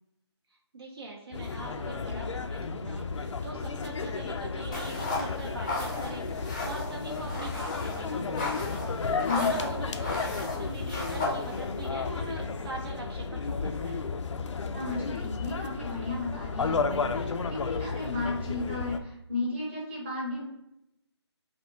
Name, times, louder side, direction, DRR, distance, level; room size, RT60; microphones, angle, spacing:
voice 1, 0.5-14.1, right 3 dB, 60° right, -1 dB, 0.6 m, -43 dB
sound 1, 1.3-19.0, left 4 dB, 90° left, 0.4 m, -33 dB
sound 2, 4.7-11.9, left 2 dB, 15° left, 0.5 m, -35 dB
voice 2, 9.2-9.5 14.7-20.4, left 3 dB, 25° right, -4 dB, 1.0 m, -34 dB
3.3 x 2.6 x 2.7 m, 0.84 s
hypercardioid pair, 170°, 15 cm